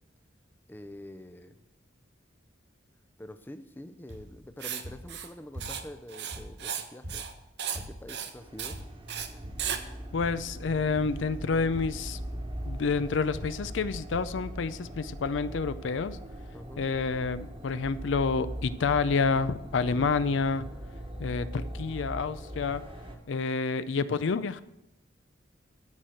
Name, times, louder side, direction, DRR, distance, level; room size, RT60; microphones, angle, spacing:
voice 1, 0.7-1.6 3.2-7.3 7.7-8.8 16.5-16.9, left 1 dB, 10° left, 0.5 m, -46 dB
sound 1, 4.1-4.5 4.8-6.0 6.3-8.2 8.7-9.1 9.4-9.8 10.2-10.6 10.9-11.4 11.7-12.2 12.5-12.8 13.3-13.8 14.1-14.5 15.2-15.3 15.5-15.6, equal, 90° right, 3.6 m, -44 dB
Writing, 4.6-4.8 5.1-5.3 5.6-5.8 6.1-6.8 7.1-7.3 7.6-7.8 8.1-8.3 8.6-8.8 9.1-9.3 9.6-9.8, right 8 dB, 60° right, 0.9 m, -35 dB
sound 2, 8.3-23.2, equal, 30° right, 1.2 m, -41 dB
voice 2, 10.1-12.2 12.6-16.2 16.8-20.7 21.2-22.8 23.3-24.6, left 4 dB, 75° left, 0.4 m, -28 dB
13.0 x 4.4 x 7.7 m
head